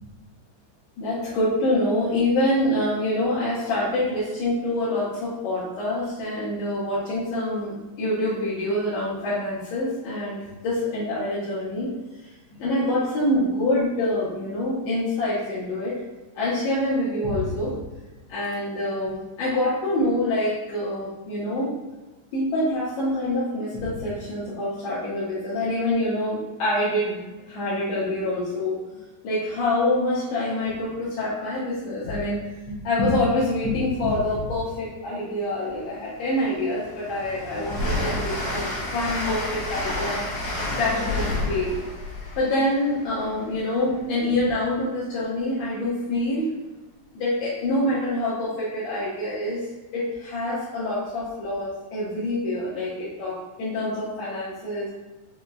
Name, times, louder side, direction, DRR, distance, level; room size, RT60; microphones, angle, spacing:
voice 1, 1.0-11.9 12.6-15.9 16.3-17.8 18.3-21.7 22.3-27.2 27.5-28.7 29.2-40.2 40.8-41.8 42.4-46.5 47.1-49.6 49.9-54.9, left 1 dB, 75° left, -9 dB, 1.5 m, -26 dB
Train, 35.6-35.7 36.2-43.9, left 1 dB, 50° left, 1.7 m, -30 dB
5.2 x 2.0 x 2.2 m, 1.2 s
omnidirectional pair, 3.5 m